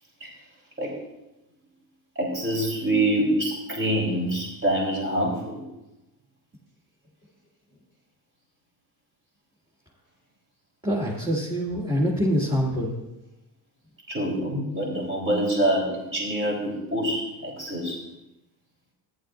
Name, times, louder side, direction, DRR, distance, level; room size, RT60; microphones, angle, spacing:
voice 1, 2.2-5.6 14.1-18.0, right 1 dB, 35° right, -3 dB, 3.6 m, -26 dB
voice 2, 10.8-13.0, equal, 10° right, -6 dB, 2.2 m, -25 dB
14.0 x 11.0 x 2.6 m, 0.95 s
cardioid pair, 110°, 40 cm